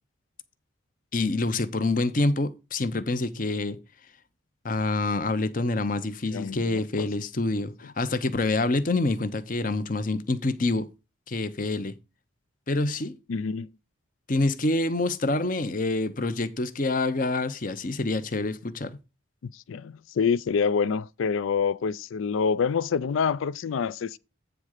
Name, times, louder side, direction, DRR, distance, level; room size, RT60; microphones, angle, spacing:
voice 1, 1.1-3.8 4.6-10.9 11.3-11.9 12.7-13.2 14.3-19.0, left 2 dB, 40° left, 0.8 m, -26 dB
voice 2, 6.3-7.1 13.3-13.7 19.4-24.2, left 6 dB, 80° left, 0.4 m, -27 dB
9.1 x 3.6 x 6.5 m
head